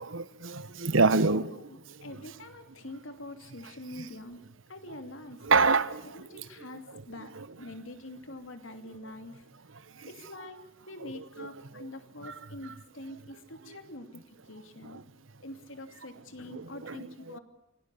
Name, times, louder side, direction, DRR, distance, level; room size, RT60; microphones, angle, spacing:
voice 1, 0.0-2.0 5.4-6.4 7.4-7.5 10.0-10.1 11.4-11.5 11.8-11.9 12.2-12.3 14.8-15.0 16.5-17.4, right 4 dB, 85° right, 1.1 m, -27 dB
voice 2, 1.7-4.4 4.7-5.4 6.1-7.3 7.6-9.4 10.0-15.0 15.4-17.4, left 1 dB, 85° left, 2.8 m, -45 dB
28.0 x 18.5 x 8.4 m
head